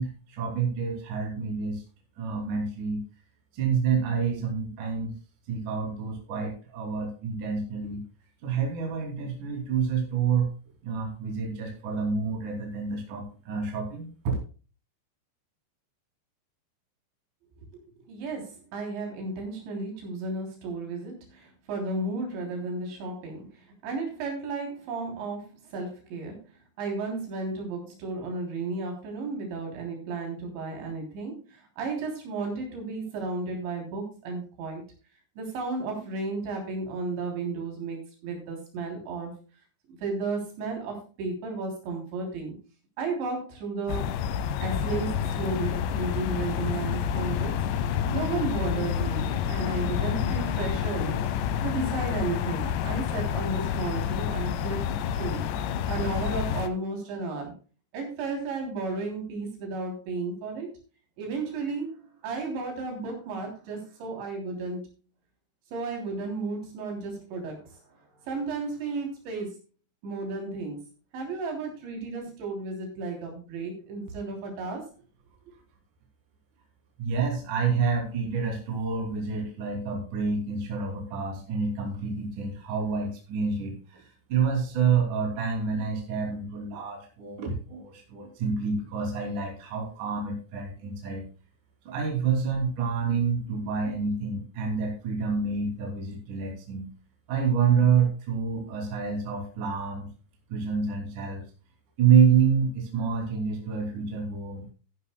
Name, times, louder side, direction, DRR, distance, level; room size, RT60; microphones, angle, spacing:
voice 1, 0.0-1.8 2.2-3.0 3.5-5.1 5.5-8.0 8.4-10.5 10.8-14.3 77.0-91.3 91.9-96.9 97.3-100.1 100.5-101.4 102.0-104.7, right 6 dB, 45° right, 1 dB, 4.1 m, -28 dB
voice 2, 18.1-26.4 26.8-34.8 35.4-39.3 39.9-42.6 43.0-44.1 44.6-47.5 47.8-54.8 55.1-57.5 57.9-60.7 61.2-64.8 65.7-67.8 68.2-69.6 70.0-70.8 71.1-74.9, right 3 dB, 75° right, 2 dB, 5.5 m, -33 dB
sound 1, 43.9-56.7, left 8 dB, 80° left, 3.1 m, -29 dB
15.0 x 11.0 x 2.3 m, 0.36 s
omnidirectional pair, 5.3 m